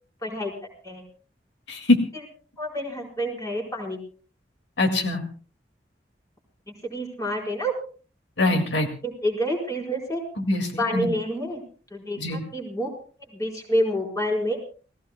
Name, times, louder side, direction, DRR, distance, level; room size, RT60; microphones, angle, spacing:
voice 1, 0.2-0.5 0.8-1.0 2.6-4.0 6.8-7.7 9.0-10.2 10.8-11.6 11.9-12.9 13.3-14.7, equal, 20° left, 0 dB, 4.6 m, -28 dB
voice 2, 4.8-5.2 8.4-8.9 10.4-11.1 12.2-12.4, left 2 dB, 80° left, 5 dB, 2.2 m, -23 dB
29.5 x 17.5 x 2.2 m, 0.39 s
head